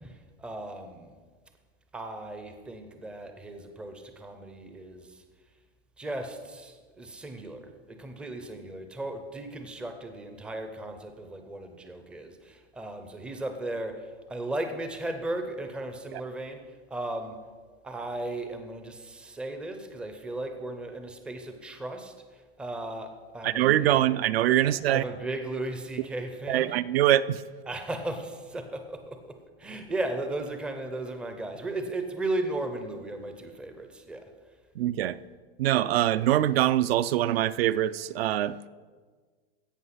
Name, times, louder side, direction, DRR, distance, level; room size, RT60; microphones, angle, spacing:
voice 1, 0.0-1.1 1.9-5.1 6.0-14.0 14.3-16.6 16.9-17.4 17.8-22.1 22.6-24.1 24.6-26.7 27.7-29.3 29.6-34.3, right 2 dB, 5° right, 0.4 m, -36 dB
voice 2, 23.4-25.0 26.5-27.4 34.8-35.2 35.6-38.7, right 13 dB, 70° right, 0.5 m, -24 dB
16.0 x 5.5 x 5.7 m
supercardioid pair, 160°, 31 cm